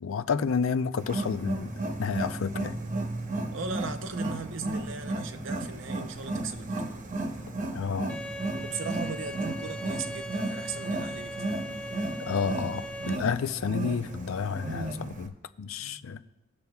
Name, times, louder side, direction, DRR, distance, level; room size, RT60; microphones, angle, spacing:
voice 1, 0.0-2.8 7.7-8.1 12.2-16.2, left 6 dB, 85° left, 0.5 m, -30 dB
Wild animals, 1.0-15.3, right 2 dB, 40° right, 0.8 m, -34 dB
voice 2, 3.5-7.0 8.5-11.6 15.8-16.0, right 5 dB, 70° right, 0.7 m, -38 dB
Bowed string instrument, 8.1-13.2, equal, 5° left, 0.4 m, -39 dB
19.0 x 6.8 x 2.3 m
head